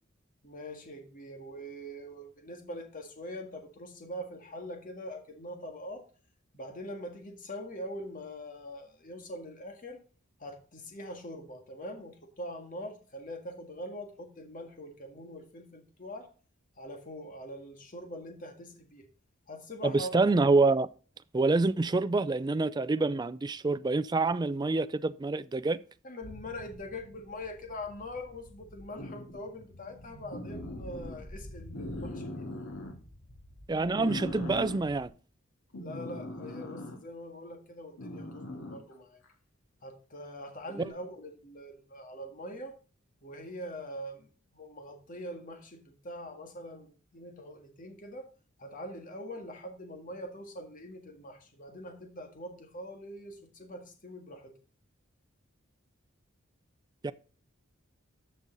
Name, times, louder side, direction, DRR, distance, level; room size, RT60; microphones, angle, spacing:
voice 1, 0.4-6.1 6.5-10.0 10.4-16.3 16.8-19.1 19.5-20.4 26.0-32.5 35.8-39.2 39.8-42.7 43.2-44.3 44.5-48.3 48.6-54.5, equal, 40° left, 1.9 m, -43 dB
voice 2, 19.8-20.9 21.3-25.8 33.7-35.1 57.0-57.1, right 3 dB, 20° right, 0.4 m, -26 dB
sound 1, 26.2-35.1, left 1 dB, 70° left, 1.9 m, -50 dB
sound 2, 29.0-29.4 30.3-31.2 31.7-32.9 33.7-34.8 35.7-37.0 38.0-38.9 40.8-40.9, left 1 dB, 90° left, 2.2 m, -40 dB
13.5 x 5.5 x 3.9 m
head